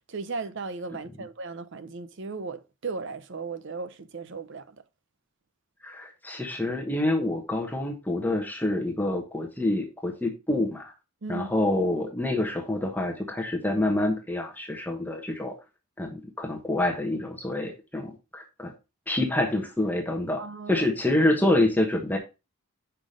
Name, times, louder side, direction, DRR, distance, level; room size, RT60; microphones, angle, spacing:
voice 1, 0.1-4.8 11.2-11.5 20.4-20.9, right 4 dB, 55° right, 0.6 m, -36 dB
voice 2, 5.8-10.9 11.3-15.5 16.0-18.7 19.1-20.4 20.7-22.2, left 1 dB, 10° left, 1.1 m, -27 dB
5.8 x 4.9 x 5.0 m
head